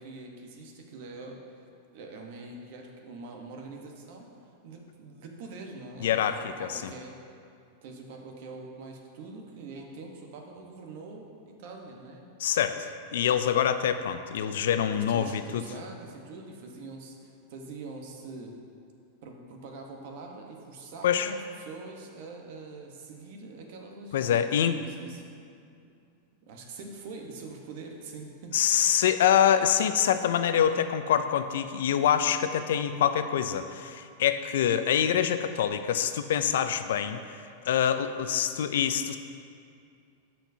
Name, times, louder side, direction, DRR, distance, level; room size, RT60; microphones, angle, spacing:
voice 1, 0.0-1.4 1.9-4.3 4.6-7.1 7.8-12.3 14.9-18.5 19.2-24.4 24.6-25.2 26.4-28.5, right 3 dB, 60° right, 1 dB, 1.0 m, -44 dB
voice 2, 6.0-6.9 12.4-15.6 21.0-21.3 24.1-24.8 28.5-37.2 37.6-39.2, left 9 dB, 80° left, 10 dB, 0.4 m, -25 dB
13.0 x 4.4 x 2.7 m, 2.4 s
supercardioid pair, 150°, 0 cm